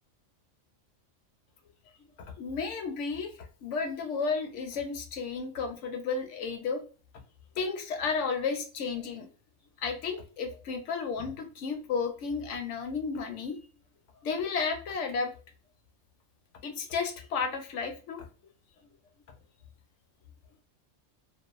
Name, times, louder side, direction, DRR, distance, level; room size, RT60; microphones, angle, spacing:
voice 1, 2.4-6.8 7.6-9.3 9.8-13.6 14.2-15.3 16.6-18.2, left 5 dB, 70° left, 5 dB, 0.9 m, -33 dB
2.5 x 2.2 x 2.3 m, 0.38 s
omnidirectional pair, 1.4 m